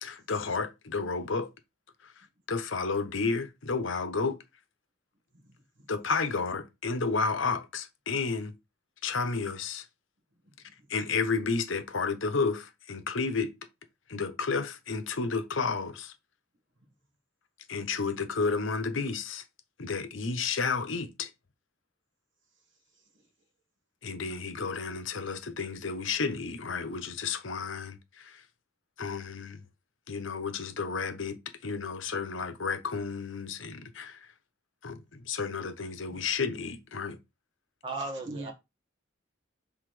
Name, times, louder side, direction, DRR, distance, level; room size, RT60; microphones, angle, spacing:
voice 1, 0.0-1.5 2.5-4.4 5.9-8.5 9.0-9.8 10.9-13.5 14.1-16.1 17.7-19.4 19.8-21.3 24.0-28.4 29.0-29.6 30.1-31.4 31.6-34.2 34.8-37.2, left 4 dB, 70° left, 0.9 m, -31 dB
voice 2, 5.3-5.9 10.4-10.9 22.9-23.2 36.1-36.2 38.0-38.5, right 2 dB, 65° right, 1.4 m, -46 dB
voice 3, 37.8-38.5, right 3 dB, 25° right, 1.7 m, -36 dB
5.8 x 3.6 x 4.9 m
head